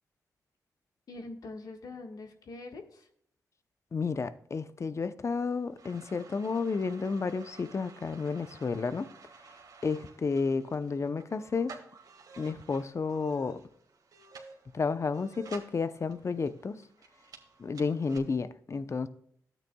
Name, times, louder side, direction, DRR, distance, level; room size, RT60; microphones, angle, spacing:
voice 1, 1.1-3.1, left 2 dB, 65° left, 1.5 m, -44 dB
voice 2, 3.9-9.1 9.8-11.7 12.4-13.6 14.7-16.8 17.6-19.1, left 4 dB, 45° left, 0.7 m, -31 dB
sound 1, 5.2-18.2, right 5 dB, 65° right, 1.8 m, -53 dB
12.5 x 9.0 x 2.3 m
cardioid pair, 55°, 7 cm